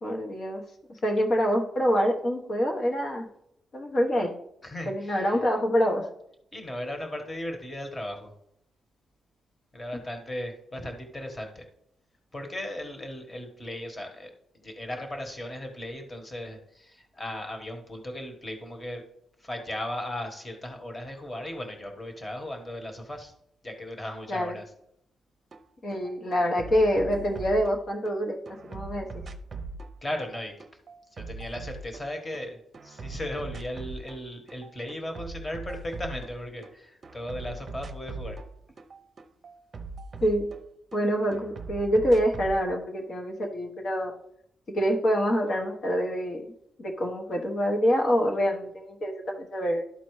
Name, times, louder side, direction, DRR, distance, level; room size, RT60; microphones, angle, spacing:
voice 1, 0.0-0.6 0.9-3.3 3.7-4.3 4.9-6.1 24.3-24.5 25.8-29.1 40.2-40.5 40.9-44.1 44.7-46.5 46.8-49.8, equal, 50° left, 0 dB, 1.1 m, -26 dB
voice 2, 4.6-5.4 6.5-8.3 9.7-11.6 12.3-14.3 14.6-19.0 19.4-23.3 23.6-24.6 30.0-30.6 31.1-38.4, left 1 dB, 25° left, 4 dB, 1.4 m, -36 dB
sound 1, 25.5-25.6 25.9-28.1 28.5-32.4 32.7-34.2 34.5-36.7 37.0-41.0 41.3-42.6, right 3 dB, 40° right, 0.7 m, -40 dB
12.5 x 4.2 x 3.2 m, 0.74 s
cardioid pair, 105°, 0 cm